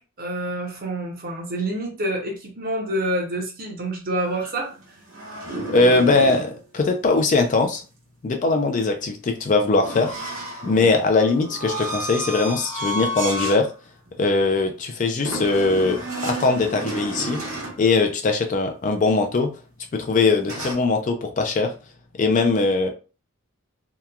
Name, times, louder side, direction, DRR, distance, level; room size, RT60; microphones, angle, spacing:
voice 1, 0.0-4.7, right 1 dB, 40° right, 0.7 m, -27 dB
sound 1, 4.2-6.5 9.8-13.6 14.1-14.3 15.2-17.8 20.4-20.7, right 1 dB, 70° right, 1.0 m, -31 dB
voice 2, 5.7-7.8 8.2-10.1 10.6-13.7 14.2-17.4 17.8-19.5 19.9-21.7 22.2-22.9, left 3 dB, 35° left, 0.3 m, -21 dB
2.9 x 2.2 x 2.3 m
head